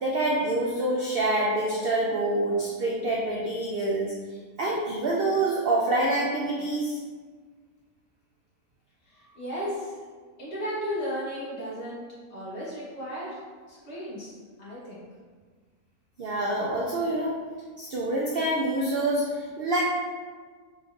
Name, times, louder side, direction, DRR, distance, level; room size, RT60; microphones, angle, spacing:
voice 1, 0.0-4.1 4.6-7.0 16.2-17.3 17.8-19.8, right 2 dB, 75° right, -4 dB, 0.5 m, -26 dB
voice 2, 9.1-10.0 10.4-13.4 13.7-14.3 14.6-15.0, equal, 45° left, -9 dB, 1.7 m, -35 dB
4.1 x 3.9 x 2.5 m, 1.5 s
omnidirectional pair, 1.7 m